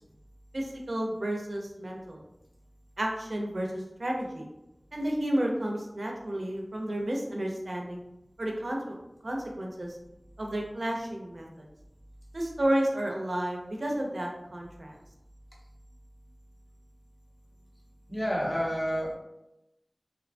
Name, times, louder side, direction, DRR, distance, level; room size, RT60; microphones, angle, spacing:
voice 1, 0.5-2.2 3.0-4.5 4.9-8.0 8.4-9.0 9.2-9.9 10.4-11.7 12.3-15.0, right 1 dB, 70° right, 0 dB, 0.5 m, -31 dB
voice 2, 18.1-19.1, equal, 25° left, -4 dB, 0.9 m, -29 dB
2.7 x 2.2 x 2.5 m, 0.91 s
wide cardioid pair, 40°, 0 cm